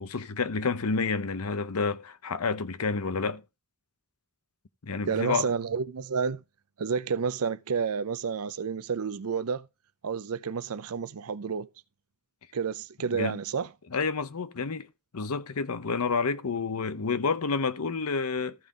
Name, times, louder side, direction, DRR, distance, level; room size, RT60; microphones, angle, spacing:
voice 1, 0.0-3.4 4.8-5.5 13.1-13.4 13.9-14.9 15.1-18.5, left 4 dB, 80° left, 0.7 m, -29 dB
voice 2, 5.1-6.4 6.8-9.7 10.0-11.7 12.5-13.7, right 6 dB, 75° right, 0.5 m, -30 dB
14.0 x 5.4 x 3.6 m
head